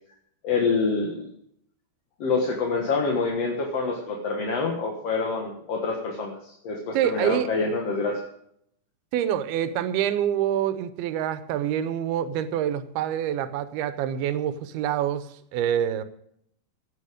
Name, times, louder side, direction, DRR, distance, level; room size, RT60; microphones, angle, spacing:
voice 1, 0.4-1.3 2.2-8.2, left 4 dB, 55° left, 0 dB, 2.2 m, -26 dB
voice 2, 6.9-7.5 9.1-16.0, right 10 dB, 90° right, 12 dB, 2.7 m, -26 dB
16.5 x 9.3 x 5.0 m, 0.70 s
omnidirectional pair, 4.3 m